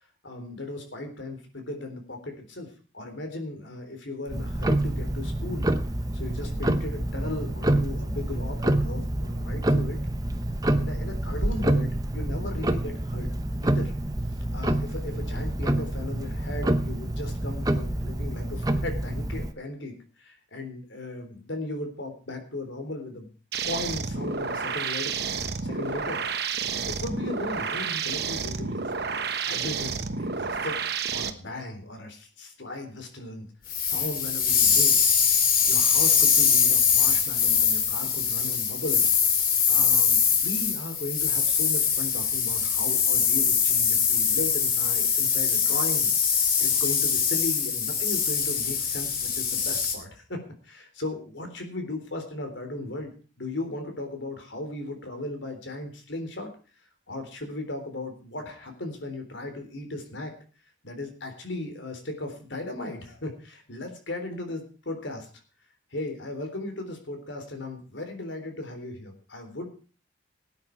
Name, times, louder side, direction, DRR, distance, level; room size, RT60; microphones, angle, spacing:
voice 1, 0.2-2.7 2.9-5.7 6.1-10.0 10.8-13.3 13.6-13.9 14.5-23.3 23.7-28.9 29.5-30.8 31.1-33.5 33.8-35.0 35.7-50.4 50.6-56.5 57.1-60.3 60.8-65.3 65.9-69.7, left 2 dB, 75° left, 5 dB, 3.6 m, -37 dB
Tick-tock, 4.3-19.5, right 1 dB, 20° right, 0.8 m, -27 dB
sound 1, 23.5-31.3, right 5 dB, 55° right, 1.1 m, -30 dB
sound 2, 33.7-50.0, left 7 dB, 45° left, 2.7 m, -23 dB
18.0 x 9.5 x 4.6 m, 0.37 s
head